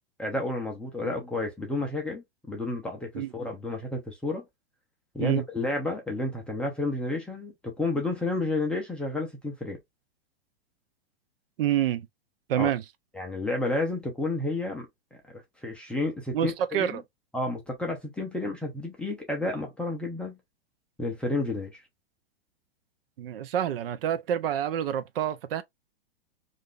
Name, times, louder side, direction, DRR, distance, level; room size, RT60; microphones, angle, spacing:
voice 1, 0.2-4.4 5.1-9.8 12.6-12.7 13.1-14.9 15.3-17.0 17.3-20.4 21.0-21.8, left 2 dB, 5° left, 0.4 m, -31 dB
voice 2, 11.6-12.1 12.5-12.8 16.3-17.0 23.2-25.6, right 10 dB, 65° right, 0.6 m, -27 dB
2.5 x 2.4 x 3.5 m
hypercardioid pair, 145°, 30 cm